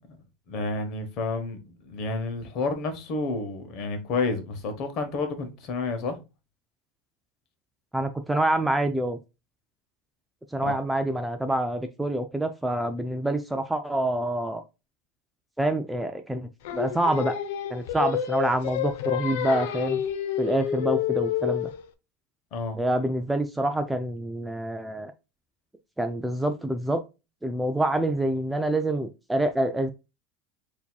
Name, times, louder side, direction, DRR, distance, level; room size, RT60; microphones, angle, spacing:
voice 1, 0.5-6.2 10.6-10.8 22.5-22.8, left 3 dB, 45° left, 1.0 m, -30 dB
voice 2, 7.9-9.2 10.5-14.6 15.6-17.4 17.7-20.0 20.4-21.7 22.8-25.1 26.0-27.0 27.4-29.9, right 1 dB, 5° right, 0.4 m, -26 dB
Singing, 16.6-21.9, left 10 dB, 75° left, 0.6 m, -29 dB
6.9 x 2.7 x 2.3 m
supercardioid pair, 150°, 0 cm